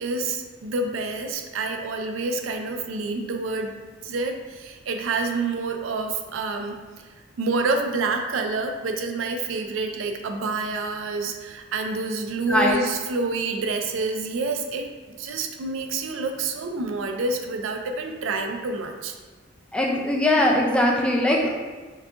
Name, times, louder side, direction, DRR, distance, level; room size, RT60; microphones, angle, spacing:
voice 1, 0.0-3.7 4.0-6.8 7.4-19.1, right 3 dB, 75° right, 4 dB, 0.4 m, -28 dB
voice 2, 19.7-21.6, left 1 dB, 5° left, -1 dB, 0.3 m, -21 dB
4.5 x 2.7 x 2.4 m, 1.3 s
head